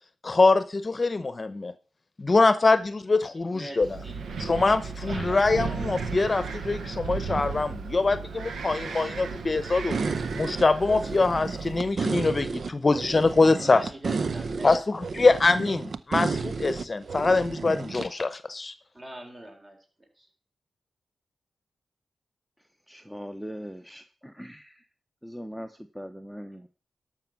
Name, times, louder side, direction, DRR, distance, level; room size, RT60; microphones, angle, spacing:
voice 1, 0.2-1.7 2.2-4.0 4.4-10.0 10.3-13.9 14.6-18.7, left 3 dB, 40° left, 13 dB, 0.8 m, -23 dB
voice 2, 3.3-4.3 5.0-5.8 13.5-14.8 18.9-20.3, right 1 dB, 35° right, 2 dB, 4.2 m, -43 dB
Wind, 3.8-11.9, right 4 dB, 85° right, 1.1 m, -35 dB
sound 1, 9.9-18.1, right 4 dB, 60° right, 0.6 m, -32 dB
voice 3, 22.9-24.8 25.2-26.7, equal, 5° right, 8 dB, 0.9 m, -40 dB
12.5 x 6.0 x 6.0 m, 0.39 s
cardioid pair, 55°, 0 cm